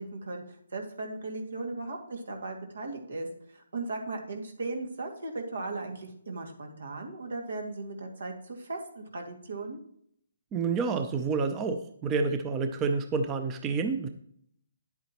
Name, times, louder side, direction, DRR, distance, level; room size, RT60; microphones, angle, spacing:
voice 1, 0.0-9.8, right 2 dB, 80° right, 3 dB, 2.2 m, -37 dB
voice 2, 10.5-14.1, right 4 dB, 15° right, 8 dB, 0.5 m, -29 dB
10.0 x 8.2 x 3.0 m, 0.67 s
hypercardioid pair, 160°, 0 cm